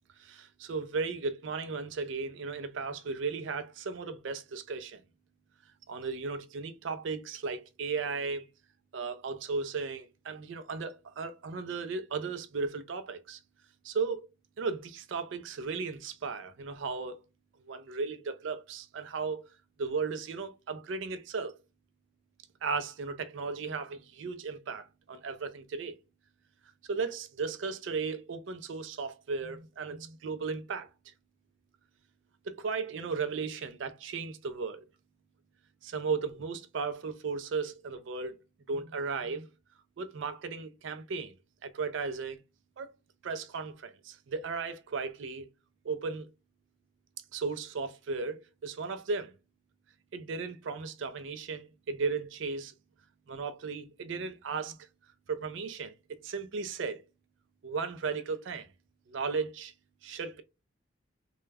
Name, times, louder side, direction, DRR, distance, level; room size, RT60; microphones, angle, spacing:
voice 1, 0.2-5.0 5.9-8.5 8.9-13.4 13.8-14.3 14.6-17.2 17.7-19.5 19.8-21.5 22.6-26.0 26.9-30.9 32.4-34.8 35.8-38.4 38.7-39.5 40.0-41.3 41.6-42.4 42.8-42.9 43.2-45.5 45.8-46.3 47.3-49.3 50.1-52.7 53.3-54.8 55.3-55.9 56.2-57.0 57.6-58.7 59.1-59.7 60.0-60.4, right 4 dB, 70° right, 0.4 m, -35 dB
2.2 x 2.0 x 3.3 m
head